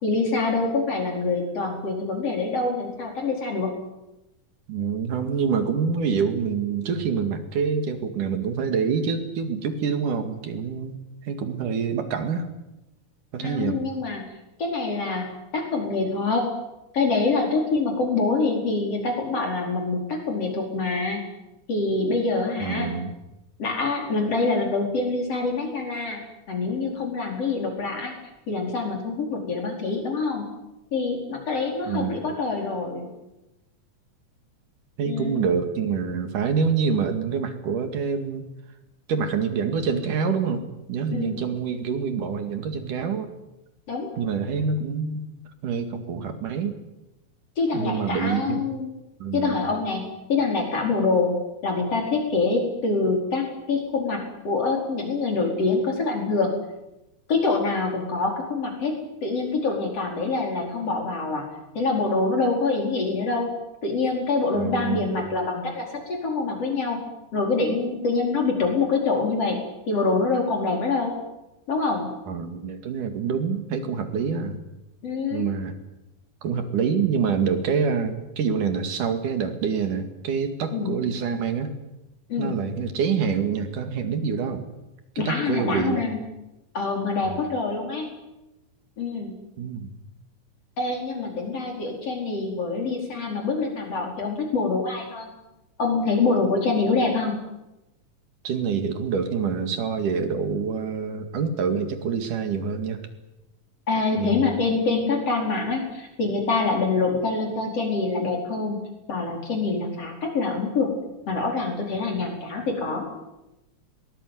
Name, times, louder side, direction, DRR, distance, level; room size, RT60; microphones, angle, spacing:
voice 1, 0.0-3.8 13.4-14.3 14.6-16.5 16.9-21.3 21.7-22.9 23.6-26.2 26.5-28.1 28.5-30.4 30.9-33.1 35.0-35.5 41.1-41.4 43.9-44.2 47.6-48.9 49.3-51.4 51.6-56.5 57.3-61.5 61.8-63.5 63.8-67.0 67.3-69.6 69.9-71.1 71.7-72.1 75.0-75.5 80.7-81.0 82.3-82.5 85.2-86.2 86.7-88.1 89.0-89.4 90.8-95.3 95.8-97.4 103.9-108.8 109.1-110.9 111.3-113.1, left 3 dB, 50° left, 1 dB, 5.7 m, -25 dB
voice 2, 4.7-11.0 11.3-12.5 13.3-13.8 22.6-23.1 31.9-32.1 35.0-38.5 39.1-43.3 44.2-45.2 45.6-46.8 47.7-48.6 49.2-49.6 64.5-65.2 72.3-74.6 75.3-75.7 76.4-81.7 82.4-84.6 85.2-86.0 87.2-87.4 89.6-89.9 98.4-103.0 104.2-104.5, right 6 dB, 80° right, 7 dB, 3.8 m, -26 dB
22.5 x 20.0 x 9.4 m, 0.96 s
omnidirectional pair, 3.6 m